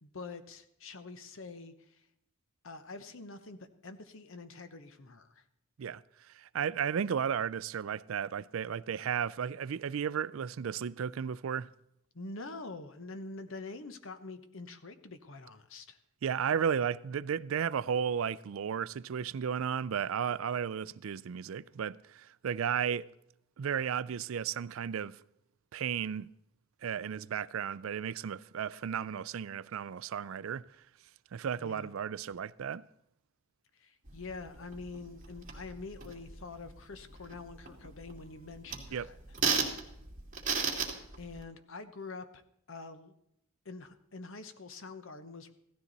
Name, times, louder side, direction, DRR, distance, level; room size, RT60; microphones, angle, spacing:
voice 1, 0.0-2.1 2.6-5.4 12.1-16.0 31.6-31.9 33.8-39.1 41.2-42.4 42.7-43.1 43.6-45.5, left 3 dB, 65° left, 1.0 m, -45 dB
voice 2, 6.3-11.7 16.2-23.1 23.6-25.2 25.7-26.3 26.8-30.6 31.3-32.9 38.9-39.1, right 7 dB, 70° right, 0.4 m, -34 dB
sound 1, 34.1-41.4, right 5 dB, 40° right, 2.2 m, -37 dB
16.0 x 13.0 x 4.0 m
head